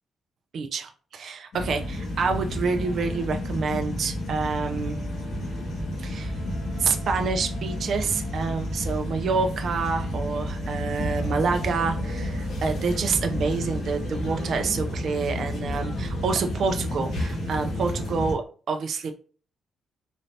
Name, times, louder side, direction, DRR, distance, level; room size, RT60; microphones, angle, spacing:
voice 1, 0.5-5.0 6.0-6.3 6.8-19.1, right 4 dB, 50° right, 5 dB, 0.4 m, -28 dB
sound 1, 1.5-18.3, left 1 dB, 60° left, 1.3 m, -31 dB
sound 2, 4.5-18.4, right 3 dB, 70° right, 0.9 m, -49 dB
3.9 x 2.7 x 3.2 m, 0.40 s
cardioid pair, 175°, 0 cm